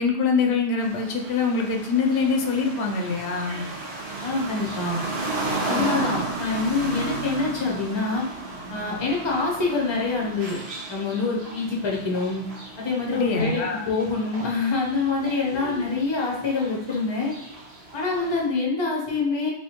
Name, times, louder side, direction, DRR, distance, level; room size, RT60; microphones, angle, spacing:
voice 1, 0.0-3.6 5.7-5.9 13.1-13.9, left 4 dB, 85° left, 2 dB, 0.8 m, -24 dB
sound 1, 0.8-18.4, right 2 dB, 75° right, 1.3 m, -34 dB
voice 2, 4.2-5.0 5.6-8.2 8.7-10.6 10.9-12.5 12.8-17.3 17.9-19.5, left 3 dB, 30° left, -3 dB, 0.8 m, -25 dB
4.1 x 2.5 x 2.9 m, 0.83 s
omnidirectional pair, 1.1 m